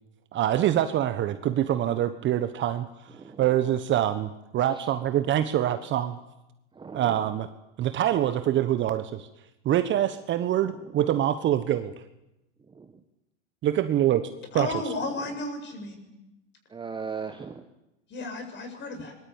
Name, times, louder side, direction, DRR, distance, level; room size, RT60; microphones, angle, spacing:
voice 1, 0.3-2.9 3.4-6.2 6.9-7.5 7.8-9.3 9.6-11.9 13.6-14.3 14.5-14.7, right 11 dB, 30° right, 11 dB, 1.2 m, -25 dB
voice 2, 3.1-3.6 4.7-4.9 6.7-7.3 10.6-11.0 12.6-13.0 15.0-15.4 16.7-17.6, right 5 dB, 15° right, 7 dB, 1.4 m, -39 dB
voice 3, 14.5-16.0 18.1-19.1, left 2 dB, 30° left, 6 dB, 7.6 m, -33 dB
26.0 x 22.5 x 8.9 m, 0.92 s
hypercardioid pair, 120°, 37 cm